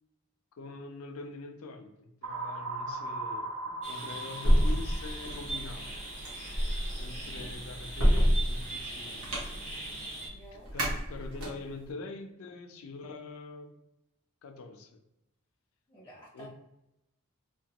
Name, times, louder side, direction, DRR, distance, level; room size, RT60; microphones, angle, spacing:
voice 1, 0.5-5.9 7.0-9.3 10.7-13.7 14.4-14.9 16.3-16.5, left 3 dB, 80° left, 6 dB, 0.4 m, -44 dB
sound 1, 2.2-6.1, right 2 dB, 65° right, 0.3 m, -39 dB
sound 2, 3.8-10.3, right 2 dB, 35° right, 0.8 m, -41 dB
sound 3, 4.4-11.8, equal, 90° right, 1.0 m, -28 dB
voice 2, 10.3-10.7 15.9-16.5, right 1 dB, 10° left, -4 dB, 0.5 m, -51 dB
2.8 x 2.2 x 2.8 m, 0.87 s
head